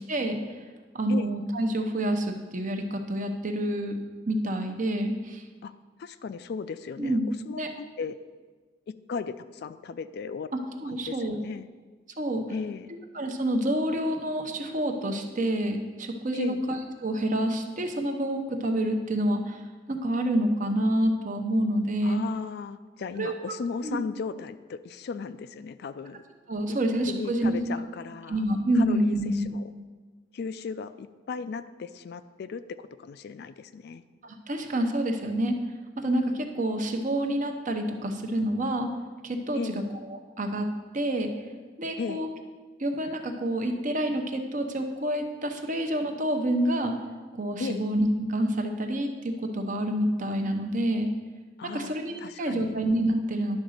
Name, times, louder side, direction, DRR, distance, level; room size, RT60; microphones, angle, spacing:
voice 1, 0.1-0.4 0.9-4.0 4.3-5.4 7.0-7.3 7.5-7.7 10.8-11.4 12.2-12.4 13.1-19.6 19.9-22.2 23.2-23.3 23.8-24.0 26.5-27.6 28.3-29.5 34.2-35.6 36.0-38.9 39.2-39.6 40.1-40.7 40.9-41.3 41.8-42.3 42.8-46.9 47.3-51.1 51.6-53.6, right 1 dB, 45° right, 4 dB, 0.8 m, -28 dB
voice 2, 6.0-8.2 8.9-10.5 10.9-11.7 12.5-12.9 16.3-16.6 22.0-26.2 26.7-26.8 27.1-28.4 28.7-29.6 30.3-34.0 39.5-39.8 42.0-42.2 47.6-47.8 51.6-52.8, left 5 dB, 60° left, 13 dB, 0.3 m, -36 dB
10.5 x 3.9 x 6.5 m, 1.4 s
head